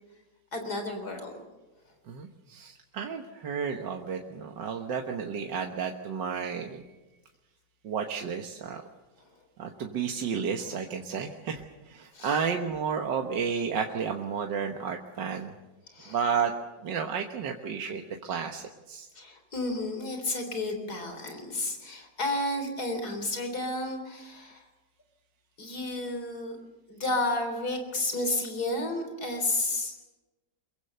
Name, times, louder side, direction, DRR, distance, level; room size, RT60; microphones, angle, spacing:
voice 1, 0.5-1.3 9.2-9.3 12.1-12.4 15.9-16.2 19.1-24.6 25.6-26.6 26.9-29.9, left 2 dB, 60° left, 5 dB, 4.1 m, -32 dB
voice 2, 2.1-6.8 7.8-8.8 9.6-15.5 16.1-16.5 16.8-19.1, right 6 dB, 75° right, 3 dB, 1.9 m, -32 dB
24.0 x 22.5 x 6.8 m, 1.1 s
omnidirectional pair, 1.9 m